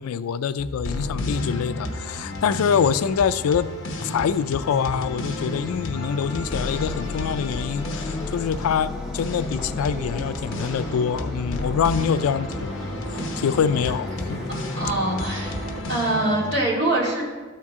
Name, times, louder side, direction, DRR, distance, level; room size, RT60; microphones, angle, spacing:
voice 1, 0.0-3.7 4.0-12.7 13.4-14.4, left 7 dB, 85° left, 14 dB, 0.3 m, -25 dB
sound 1, 0.6-16.5, left 2 dB, 65° left, 0.9 m, -32 dB
sound 2, 1.7-15.8, equal, ahead, 1.1 m, -36 dB
voice 2, 14.7-15.5 15.9-17.2, right 2 dB, 50° right, -6 dB, 2.4 m, -23 dB
13.0 x 4.4 x 3.6 m, 1.4 s
head